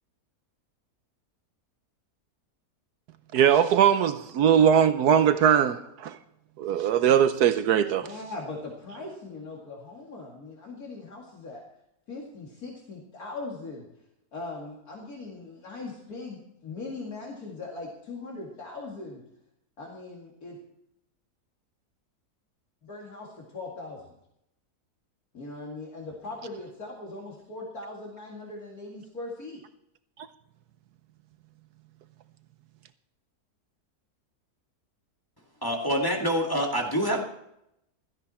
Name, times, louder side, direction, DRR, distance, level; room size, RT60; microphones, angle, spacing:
voice 1, 3.3-6.2 6.6-8.1, right 8 dB, 80° right, 1.3 m, -21 dB
voice 2, 8.0-11.6 12.1-13.8 14.3-19.2 19.8-20.6 22.8-24.1 25.3-29.6, left 3 dB, 65° left, 2.8 m, -40 dB
voice 3, 35.6-37.2, equal, 15° left, 2.1 m, -26 dB
16.5 x 13.5 x 4.3 m
omnidirectional pair, 1.7 m